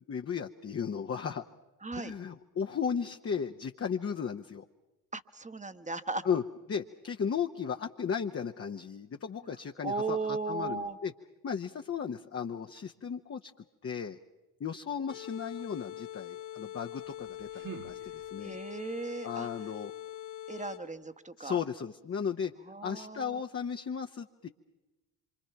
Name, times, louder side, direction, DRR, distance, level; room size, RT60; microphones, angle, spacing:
voice 1, 0.1-1.4 2.0-4.6 6.2-6.4 6.7-11.1 11.4-13.5 13.8-14.2 14.6-18.6 19.2-19.9 21.4-22.5 22.8-24.5, left 7 dB, 30° left, 4 dB, 1.0 m, -35 dB
voice 2, 1.8-2.1 5.1-6.2 9.8-11.0 18.4-19.5 20.5-21.6 22.7-23.4, right 3 dB, 15° right, 11 dB, 1.2 m, -36 dB
sound 1, 15.1-21.0, left 12 dB, 85° left, 2.4 m, -43 dB
sound 2, 17.0-18.7, right 8 dB, 40° right, 1.6 m, -48 dB
26.5 x 25.0 x 5.8 m, 1.1 s
hypercardioid pair, 60°, 50 cm